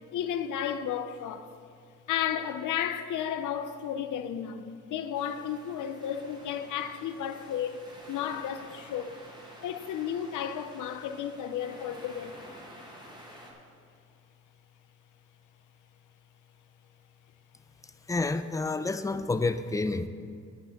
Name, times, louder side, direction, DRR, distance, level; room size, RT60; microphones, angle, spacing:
voice 1, 0.1-1.5 2.1-9.2 9.6-12.5, left 9 dB, 85° left, 0.6 m, -33 dB
sound 1, 5.1-13.5, equal, 15° right, 1.6 m, -50 dB
voice 2, 18.1-20.1, left 3 dB, 10° left, 0.3 m, -29 dB
9.0 x 5.6 x 7.7 m
wide cardioid pair, 140°, 30 cm